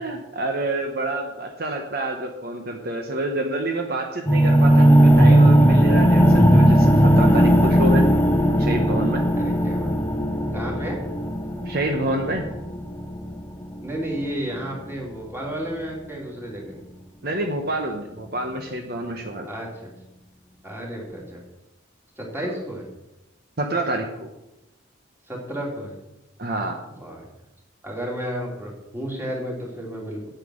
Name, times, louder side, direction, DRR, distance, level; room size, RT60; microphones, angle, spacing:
voice 1, 0.0-8.0 8.6-9.2 11.6-12.4 17.2-19.5 23.6-24.3 26.4-26.8, right 1 dB, 50° right, 3 dB, 1.1 m, -28 dB
sound 1, 4.3-14.2, equal, 10° left, 0.9 m, -17 dB
voice 2, 9.3-9.9 10.5-11.0 13.8-16.8 19.4-19.9 20.6-21.4 22.2-22.9 25.3-26.0 27.0-27.3 27.8-30.3, equal, 10° right, -2 dB, 3.0 m, -32 dB
9.2 x 9.1 x 6.5 m, 0.94 s
head